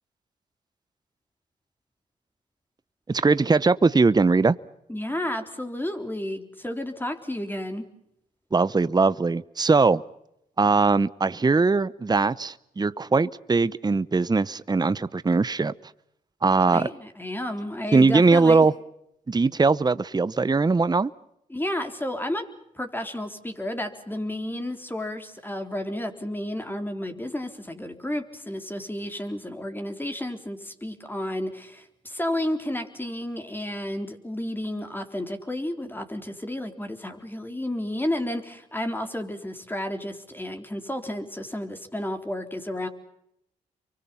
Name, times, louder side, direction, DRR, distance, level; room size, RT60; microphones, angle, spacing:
voice 1, 3.1-4.6 8.5-10.0 10.6-15.7 16.4-16.9 17.9-18.7 19.3-21.1, right 4 dB, 25° right, 17 dB, 0.8 m, -20 dB
voice 2, 4.9-7.9 16.7-18.7 21.5-22.5 22.7-42.9, left 1 dB, 15° left, 6 dB, 3.9 m, -32 dB
29.0 x 24.5 x 5.7 m, 0.79 s
supercardioid pair, 50°, 15 cm